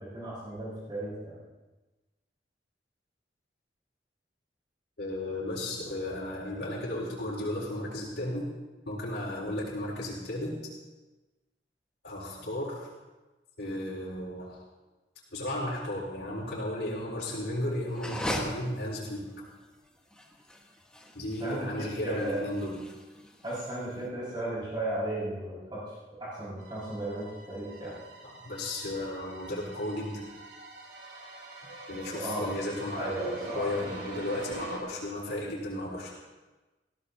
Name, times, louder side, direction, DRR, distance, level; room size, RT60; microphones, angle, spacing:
voice 1, 0.0-1.4 21.4-22.4 23.4-25.8 26.2-28.0 32.1-32.5 33.0-33.7, right 1 dB, 25° right, -9 dB, 5.7 m, -35 dB
voice 2, 5.0-8.5 8.8-10.6 12.0-12.9 13.6-14.6 15.3-19.3 21.1-22.8 28.2-30.2 31.9-36.1, left 1 dB, 75° left, -10 dB, 4.3 m, -34 dB
sound 1, 17.9-24.0, left 1 dB, 5° left, 1.5 m, -39 dB
Horror movie strings, 26.6-34.8, right 2 dB, 80° right, 3.6 m, -44 dB
21.0 x 16.0 x 2.9 m, 1.2 s
head